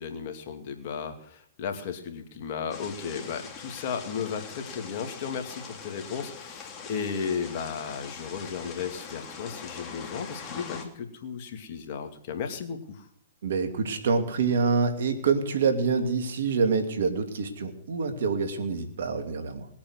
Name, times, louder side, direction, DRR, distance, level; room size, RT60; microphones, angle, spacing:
voice 1, 0.0-13.1, left 6 dB, 50° left, 6 dB, 2.5 m, -35 dB
sound 1, 2.7-10.8, left 5 dB, 25° left, 2.8 m, -42 dB
voice 2, 13.4-19.7, right 5 dB, 70° right, 7 dB, 2.7 m, -26 dB
20.0 x 8.7 x 6.5 m, 0.69 s
hypercardioid pair, 125°, 0 cm